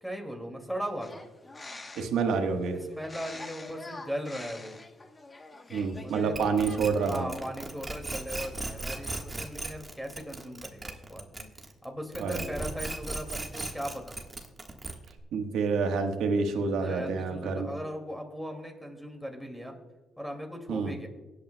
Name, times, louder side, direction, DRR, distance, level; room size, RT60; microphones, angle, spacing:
voice 1, 0.0-1.2 2.4-4.8 6.0-6.7 7.0-11.5 11.8-14.2 16.7-19.7 20.2-21.1, equal, ahead, 3 dB, 2.3 m, -38 dB
sound 1, 1.0-2.3 3.0-6.3 6.5-7.1, left 2 dB, 25° left, 1.0 m, -45 dB
voice 2, 1.9-2.8 5.7-7.3 12.2-12.4 15.3-17.7 20.7-20.9, right 5 dB, 85° right, 4 dB, 1.3 m, -28 dB
sound 2, 6.3-11.8 12.1-15.2, right 2 dB, 20° right, 1.4 m, -37 dB
23.0 x 8.6 x 2.2 m, 1.1 s
cardioid pair, 90°, 0 cm